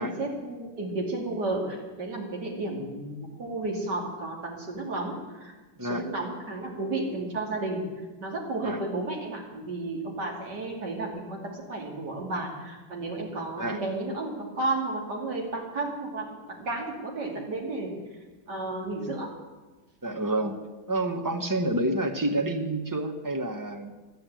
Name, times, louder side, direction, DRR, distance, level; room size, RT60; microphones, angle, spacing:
voice 1, 0.0-5.5 5.8-7.8 8.2-17.9 18.5-19.3, right 2 dB, 60° right, 0 dB, 3.2 m, -32 dB
voice 2, 20.0-20.6 20.9-23.9, right 1 dB, 15° right, 5 dB, 0.7 m, -28 dB
12.5 x 9.7 x 9.0 m, 1.2 s
omnidirectional pair, 2.1 m